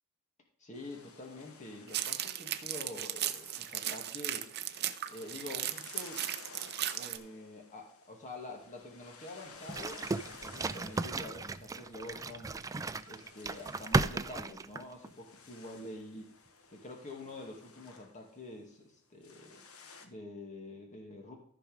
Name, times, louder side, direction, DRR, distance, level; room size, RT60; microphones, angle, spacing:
voice 1, 0.6-4.5 5.1-6.2 6.9-12.5 13.1-16.3 16.7-19.6 20.0-21.3, left 2 dB, 35° left, 1 dB, 2.2 m, -47 dB
sound 1, 0.7-18.6 18.8-18.9 19.2-20.1, left 4 dB, 70° left, 1.2 m, -55 dB
sound 2, 1.9-7.2, right 12 dB, 50° right, 0.7 m, -36 dB
sound 3, 9.7-15.1, right 3 dB, 15° right, 0.3 m, -35 dB
14.0 x 5.2 x 5.0 m, 0.68 s
head